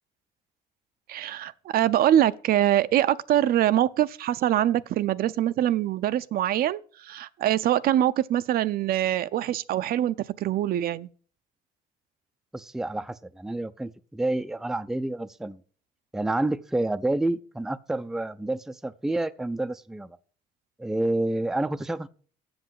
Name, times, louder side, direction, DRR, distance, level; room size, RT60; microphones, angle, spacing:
voice 1, 1.1-11.1, right 12 dB, 65° right, 0.5 m, -24 dB
voice 2, 12.5-15.6 16.1-20.2 20.8-22.1, right 2 dB, 5° right, 0.4 m, -29 dB
7.9 x 6.9 x 7.5 m
cardioid pair, 110°, 17 cm